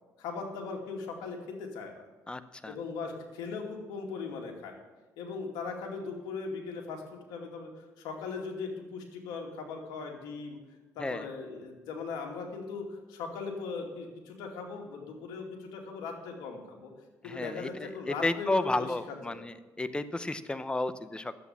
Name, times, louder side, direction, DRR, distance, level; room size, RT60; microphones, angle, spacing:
voice 1, 0.2-2.1 2.6-4.8 5.2-10.6 10.9-16.9 17.2-18.9 19.3-19.4, left 4 dB, 85° left, 1 dB, 2.4 m, -39 dB
voice 2, 2.3-2.7 11.0-11.3 17.2-17.9 18.2-21.4, left 2 dB, 15° left, 13 dB, 0.8 m, -32 dB
11.0 x 8.1 x 7.1 m, 1.2 s
cardioid pair, 95°, 7 cm